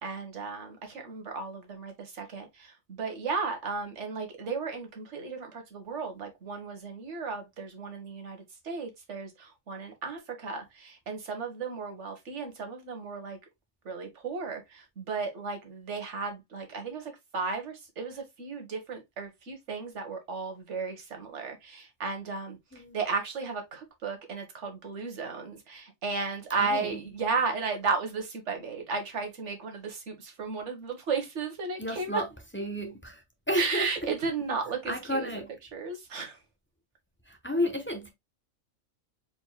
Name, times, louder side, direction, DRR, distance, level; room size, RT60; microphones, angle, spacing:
voice 1, 0.0-8.4 8.6-13.4 13.8-22.6 22.9-32.2 33.6-35.3 35.7-36.4, right 4 dB, 60° right, 1.6 m, -34 dB
voice 2, 26.6-27.0 31.8-32.3 32.5-33.2 33.5-33.9 34.9-35.6 37.3-38.1, equal, 10° left, 0.7 m, -31 dB
4.4 x 4.3 x 2.2 m
omnidirectional pair, 1.4 m